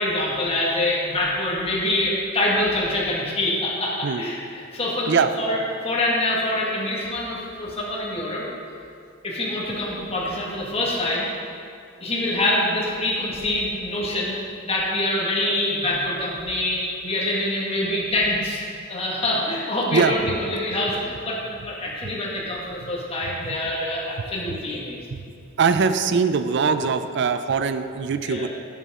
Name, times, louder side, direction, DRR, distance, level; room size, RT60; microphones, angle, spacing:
voice 1, 0.0-5.6 5.8-8.4 9.2-11.3 12.0-14.4 14.6-18.6 18.9-25.0 28.2-28.5, left 1 dB, 30° left, -5 dB, 1.7 m, -25 dB
voice 2, 25.6-28.5, right 5 dB, 60° right, 10 dB, 0.4 m, -21 dB
10.5 x 8.3 x 3.7 m, 2.5 s
head